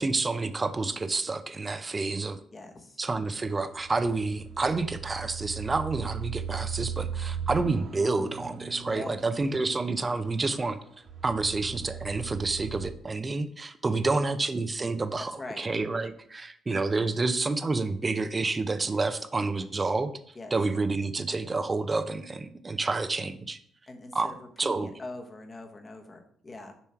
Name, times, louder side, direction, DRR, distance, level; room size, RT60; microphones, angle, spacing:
voice 1, 0.0-2.4 3.0-10.8 11.2-20.1 20.5-23.6 24.1-24.3 24.6-24.9, right 3 dB, 25° right, 10 dB, 0.6 m, -29 dB
voice 2, 2.5-3.0 8.9-9.2 13.8-14.3 15.4-15.6 20.3-20.5 23.9-26.7, left 2 dB, 30° left, 4 dB, 1.2 m, -43 dB
sound 1, 3.4-12.9, right 7 dB, 55° right, 1.6 m, -38 dB
7.1 x 3.1 x 5.7 m, 0.62 s
cardioid pair, 90°, 0 cm